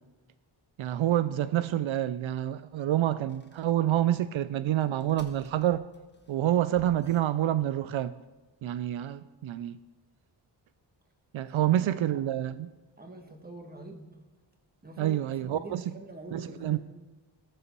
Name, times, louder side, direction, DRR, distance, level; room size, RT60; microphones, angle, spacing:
voice 1, 0.8-5.9 6.3-8.1 8.6-9.8 11.3-12.7 15.0-15.8 16.3-16.8, right 12 dB, 85° right, 0.5 m, -27 dB
sound 1, 3.3-3.7 4.8-7.9, left 2 dB, 25° left, 1.1 m, -55 dB
voice 2, 11.5-12.2 13.0-14.2 14.8-16.8, right 2 dB, 20° right, 1.5 m, -45 dB
19.0 x 7.0 x 4.5 m
wide cardioid pair, 150°, 46 cm